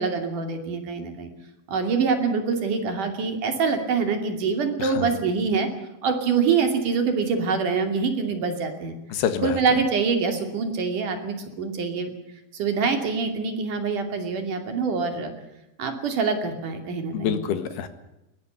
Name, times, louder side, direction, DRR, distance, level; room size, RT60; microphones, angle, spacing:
voice 1, 0.0-1.3 1.7-5.7 6.0-9.0 9.4-12.1 12.5-15.3 15.8-17.4, right 5 dB, 55° right, 6 dB, 4.0 m, -25 dB
voice 2, 4.8-5.2 9.1-9.6 17.1-17.9, left 8 dB, 90° left, 10 dB, 3.6 m, -27 dB
21.0 x 18.5 x 8.1 m, 0.91 s
omnidirectional pair, 4.5 m